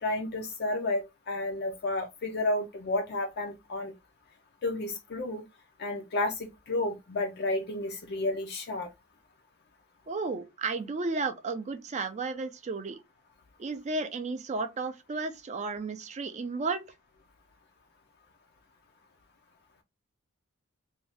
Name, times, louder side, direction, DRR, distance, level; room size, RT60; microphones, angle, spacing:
voice 1, 0.0-3.9 4.6-5.4 5.8-8.9, left 2 dB, 50° left, 0.4 m, -31 dB
voice 2, 10.1-13.0 13.6-16.8, right 3 dB, 30° right, 0.4 m, -33 dB
2.6 x 2.3 x 3.2 m
head